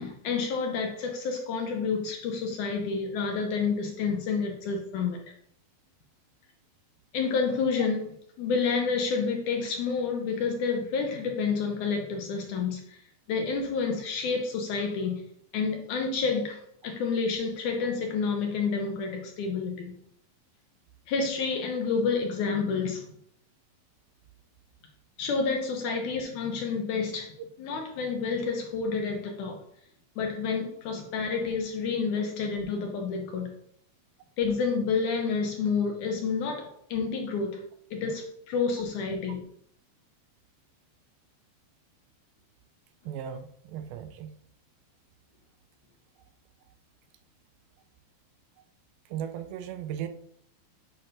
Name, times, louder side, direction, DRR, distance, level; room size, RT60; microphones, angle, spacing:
voice 1, 0.0-5.2 7.1-13.0 13.3-15.2 15.5-16.6 16.8-19.9 21.1-23.1 25.2-27.3 27.6-29.6 30.2-33.5 34.4-37.6 37.9-39.4, left 5 dB, 75° left, 2 dB, 2.0 m, -29 dB
voice 2, 43.1-44.3 49.1-50.1, right 9 dB, 90° right, 8 dB, 2.4 m, -36 dB
8.6 x 6.0 x 2.6 m, 0.71 s
omnidirectional pair, 4.2 m